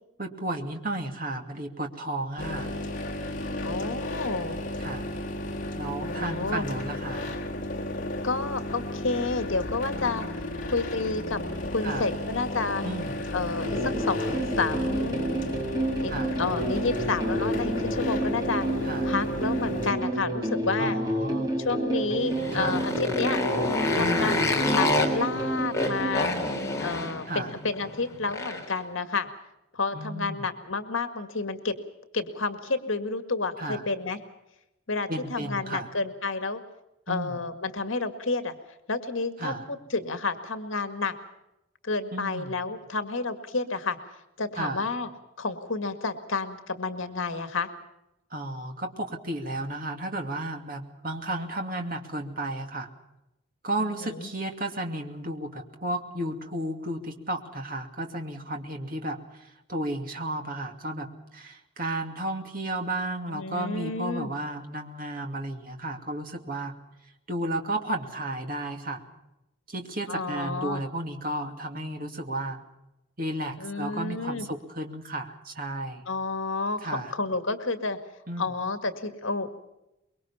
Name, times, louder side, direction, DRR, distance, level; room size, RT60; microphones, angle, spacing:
voice 1, 0.2-2.8 4.8-5.1 5.8-7.4 11.8-12.1 12.8-13.2 16.1-16.3 18.8-19.1 20.8-21.5 22.5-22.8 24.0-24.3 27.3-27.5 29.9-30.4 33.6-33.9 35.1-35.9 37.1-37.4 39.4-39.6 42.1-42.6 44.6-44.8 48.3-52.9 53.6-59.2 59.7-66.7 67.3-69.0 69.7-72.6 73.2-76.0 76.8-77.1 78.3-78.5, right 1 dB, 45° right, 4 dB, 2.6 m, -33 dB
sound 1, 2.4-19.9, left 1 dB, 40° left, 3.7 m, -33 dB
voice 2, 3.6-4.6 6.1-6.7 8.2-10.2 10.6-12.8 13.3-15.2 16.0-16.1 16.4-18.7 19.0-21.0 21.6-23.4 23.9-26.3 26.8-29.3 29.7-31.7 32.1-34.2 34.9-36.6 37.1-38.5 38.9-41.1 41.8-44.0 44.4-45.1 45.4-47.7 53.8-54.3 63.3-64.3 70.1-70.8 73.6-74.5 76.1-78.0 78.4-79.5, left 3 dB, 75° left, 8 dB, 1.9 m, -30 dB
sound 2, 13.6-26.2, right 1 dB, 20° right, 3.0 m, -29 dB
Motorcycle, 22.2-28.8, left 2 dB, 15° left, 3.4 m, -28 dB
24.5 x 22.5 x 5.7 m, 0.90 s
head